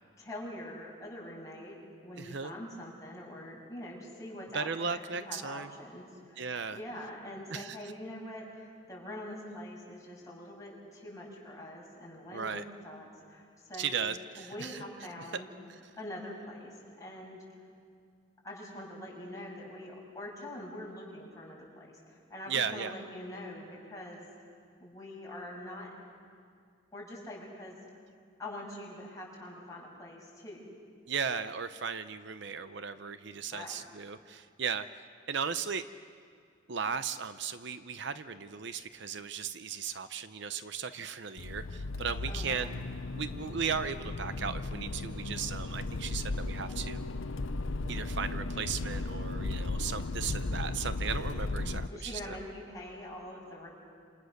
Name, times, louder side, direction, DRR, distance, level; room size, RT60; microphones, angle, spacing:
voice 1, 0.2-1.8 2.0-15.5 16.0-17.4 18.4-24.2 24.8-25.9 26.9-27.8 28.4-30.6 33.5-33.8 42.3-42.7 51.9-53.7, left 1 dB, 15° left, -4 dB, 6.8 m, -44 dB
voice 2, 2.2-2.5 4.5-5.7 6.4-6.8 7.5-7.8 12.3-12.6 13.8-14.8 22.5-22.9 31.1-35.0 35.3-35.8 36.7-42.8 43.1-47.1 47.9-52.4, right 6 dB, 60° right, 11 dB, 0.7 m, -36 dB
Accelerating revving vroom, 41.4-51.9, left 2 dB, 80° left, 0.8 m, -36 dB
29.0 x 28.0 x 6.6 m, 2.2 s
head